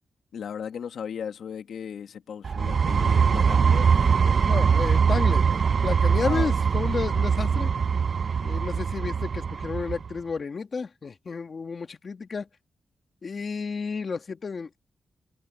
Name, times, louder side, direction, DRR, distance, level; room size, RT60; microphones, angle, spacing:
voice 1, 0.3-4.4 6.2-6.5, left 7 dB, 80° left, 1.6 m, -37 dB
sound 1, 2.4-10.1, right 6 dB, 55° right, 0.7 m, -22 dB
voice 2, 4.5-5.5 5.8-7.7 8.4-12.5 13.2-14.8, left 5 dB, 50° left, 2.0 m, -31 dB
cardioid pair, 80°, 0 cm